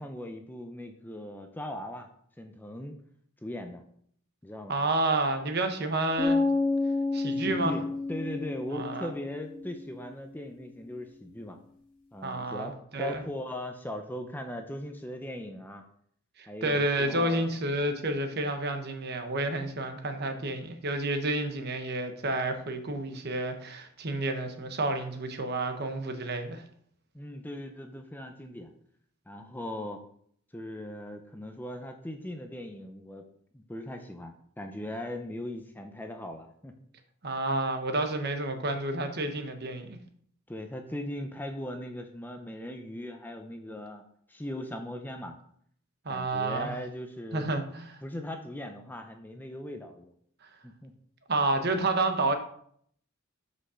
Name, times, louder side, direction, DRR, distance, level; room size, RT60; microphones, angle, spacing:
voice 1, 0.0-2.1 2.4-3.0 3.4-3.8 4.4-4.8 7.2-11.6 12.1-15.8 16.5-17.5 27.1-28.7 29.3-30.0 30.5-33.2 33.5-36.7 40.5-44.0 44.3-45.4 46.1-47.5 48.0-50.1 50.6-50.9, left 1 dB, 10° left, 0.6 m, -39 dB
voice 2, 4.7-6.4 7.1-7.8 8.7-9.1 12.2-13.2 16.4-26.6 37.2-40.0 46.0-46.8 47.3-48.0 51.3-52.3, right 2 dB, 45° right, 1.1 m, -30 dB
sound 1, 6.2-10.1, left 3 dB, 35° left, 2.4 m, -30 dB
6.2 x 5.4 x 6.3 m
head